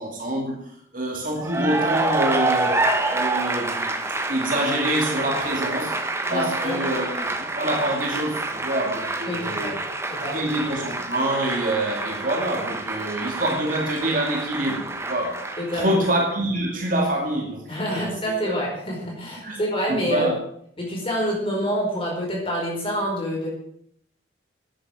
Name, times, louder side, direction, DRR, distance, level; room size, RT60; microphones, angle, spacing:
voice 1, 0.0-3.9 4.3-9.7 10.2-18.2 18.4-18.6 19.4-19.6 19.9-20.3, right 1 dB, 45° right, 2.5 m, -26 dB
Cheering / Applause, 1.4-16.3, right 2 dB, 15° right, 1.2 m, -28 dB
voice 2, 6.3-6.8 9.3-10.4 15.6-16.0 17.7-20.3 20.8-23.5, equal, 30° left, 4.9 m, -27 dB
10.5 x 9.3 x 9.0 m
head